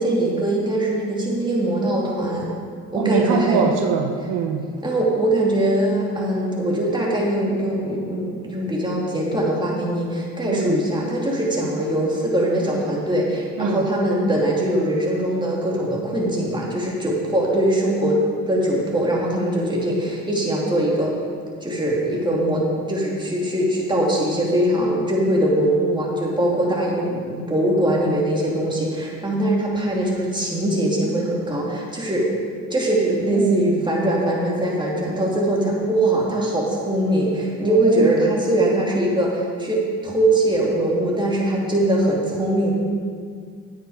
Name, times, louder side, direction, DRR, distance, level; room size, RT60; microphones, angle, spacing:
voice 1, 0.0-2.5 2.9-3.6 4.8-21.1 21.6-32.3 32.7-42.7, right 1 dB, 15° right, -4 dB, 2.8 m, -21 dB
voice 2, 2.9-4.7 10.5-10.8 13.6-13.8 33.3-33.8 37.7-38.3, right 6 dB, 85° right, 4 dB, 0.9 m, -23 dB
10.0 x 8.9 x 5.0 m, 2.1 s
cardioid pair, 90°, 30 cm